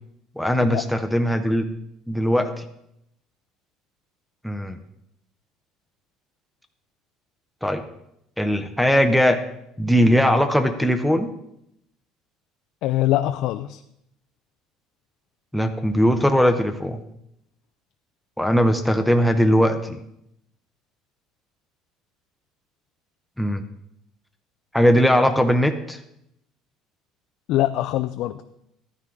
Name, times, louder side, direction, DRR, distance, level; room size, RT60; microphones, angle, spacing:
voice 1, 0.4-1.7 2.1-2.6 4.4-4.8 7.6-7.8 8.4-9.4 9.8-11.3 15.5-17.0 18.4-20.0 23.4-23.6 24.7-26.0, equal, ahead, 5 dB, 0.6 m, -19 dB
voice 2, 12.8-13.8 27.5-28.4, left 14 dB, 60° left, 10 dB, 0.4 m, -23 dB
12.0 x 9.7 x 3.7 m, 0.78 s
cardioid pair, 140°, 0 cm